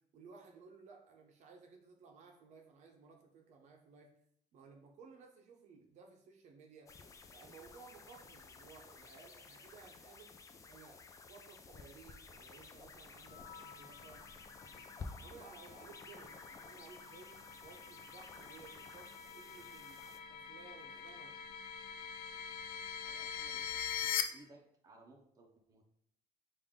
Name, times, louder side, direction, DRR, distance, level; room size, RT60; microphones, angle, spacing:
voice 1, 0.1-4.1 4.5-6.9 7.3-10.3 10.6-14.3 14.7-17.4 17.6-21.3, right 5 dB, 60° right, 2 dB, 0.7 m, -58 dB
sound 1, 6.9-20.2, left 4 dB, 25° left, 0.4 m, -54 dB
sound 2, 13.3-24.2, left 9 dB, 90° left, 0.4 m, -44 dB
voice 2, 22.9-25.8, right 2 dB, 25° right, 0 dB, 0.8 m, -62 dB
5.3 x 2.6 x 3.6 m, 0.70 s
cardioid pair, 150°, 14 cm